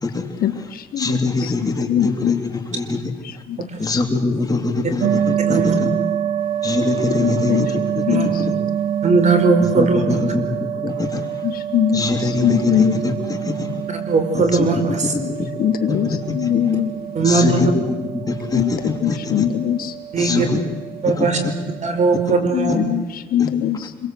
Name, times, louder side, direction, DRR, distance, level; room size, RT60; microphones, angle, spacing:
voice 1, 0.4-1.1 1.4-1.5 1.9-2.4 3.2-3.6 3.9-4.0 7.2-7.8 8.0-8.4 11.4-13.0 15.2-15.3 15.6-16.9 18.5-19.9 20.3-20.5 22.5-24.1, left 10 dB, 60° left, 9 dB, 1.6 m, -22 dB
voice 2, 1.0-3.1 3.8-5.9 6.6-7.8 8.1-8.5 9.6-11.2 11.9-13.7 14.3-15.2 15.9-16.5 17.2-19.5 20.2-20.6 21.1-21.5 22.7-22.8 23.4-23.5, left 3 dB, 20° left, 3 dB, 3.0 m, -24 dB
sound 1, 5.0-22.2, right 9 dB, 65° right, 2.8 m, -26 dB
voice 3, 9.0-10.2 14.1-15.1 17.1-17.7 20.1-20.5 21.0-21.4 21.8-22.8, right 4 dB, 45° right, 7 dB, 4.7 m, -18 dB
26.0 x 23.0 x 7.9 m, 1.2 s
cardioid pair, 110°, 17 cm